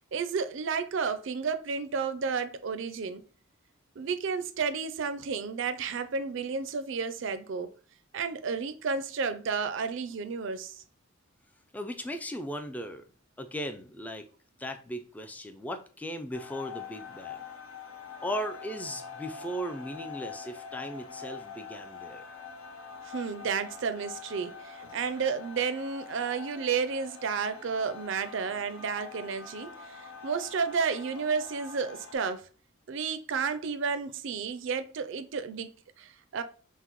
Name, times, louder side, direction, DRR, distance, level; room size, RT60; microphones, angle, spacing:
voice 1, 0.1-3.2 4.0-7.7 8.1-10.8 23.0-32.5 32.9-36.4, right 5 dB, 60° right, 0.4 m, -32 dB
voice 2, 11.7-13.0 13.4-14.3 14.6-17.4 18.2-22.3, equal, 5° left, 0.3 m, -37 dB
sound 1, 16.3-32.1, left 6 dB, 75° left, 0.6 m, -45 dB
5.7 x 2.1 x 3.0 m
head